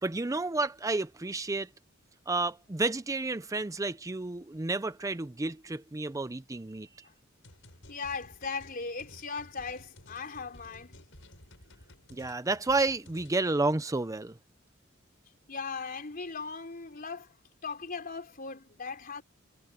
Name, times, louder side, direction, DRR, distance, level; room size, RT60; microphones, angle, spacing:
voice 1, 0.0-1.7 2.3-7.1 12.1-14.4, right 3 dB, 15° right, 0.5 m, -31 dB
sound 1, 7.4-13.4, left 1 dB, 70° left, 7.6 m, -54 dB
voice 2, 7.9-11.0 15.5-19.2, left 4 dB, 45° left, 3.9 m, -38 dB
head